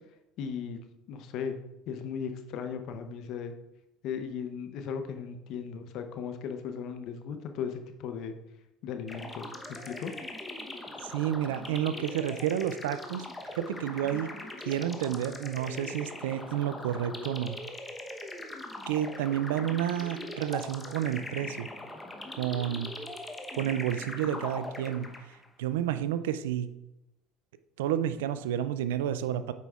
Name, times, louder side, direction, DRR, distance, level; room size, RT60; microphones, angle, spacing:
voice 1, 0.4-0.8 1.1-1.6 1.9-3.5 4.0-8.4 8.8-10.1, left 7 dB, 65° left, 7 dB, 0.7 m, -37 dB
sound 1, 9.1-25.5, left 2 dB, 15° left, 0.9 m, -41 dB
voice 2, 11.0-13.3 13.5-14.3 14.6-17.6 18.9-21.7 22.4-22.9 23.5-25.1 25.6-26.7 27.8-29.5, right 10 dB, 85° right, 13 dB, 0.4 m, -30 dB
8.0 x 5.2 x 2.4 m, 0.91 s
hypercardioid pair, 80°, 0 cm